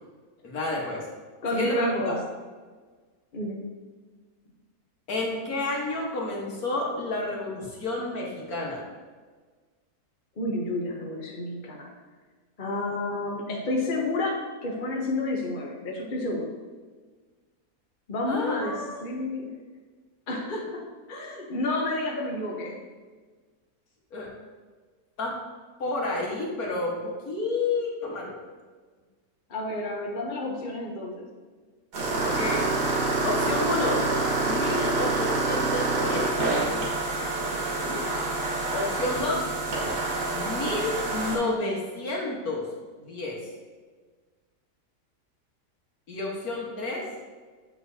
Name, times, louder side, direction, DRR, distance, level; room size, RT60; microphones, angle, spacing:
voice 1, 0.4-1.0 1.5-2.2 5.1-8.8 18.3-19.0 24.1-24.3 25.2-25.4 25.8-28.3 32.2-32.7 33.2-34.1 34.5-36.4 38.7-39.5 40.3-42.6 43.0-43.4 46.1-47.1, left 2 dB, 60° left, -3 dB, 1.8 m, -30 dB
voice 2, 1.4-2.2 3.3-3.7 10.4-11.9 12.6-16.5 18.1-19.5 20.3-22.8 29.5-31.3 37.4-38.1, left 2 dB, 40° left, 0 dB, 0.8 m, -30 dB
sound 1, 31.9-41.4, right 2 dB, 70° right, 2.0 m, -27 dB
8.1 x 6.1 x 2.7 m, 1.4 s
omnidirectional pair, 1.7 m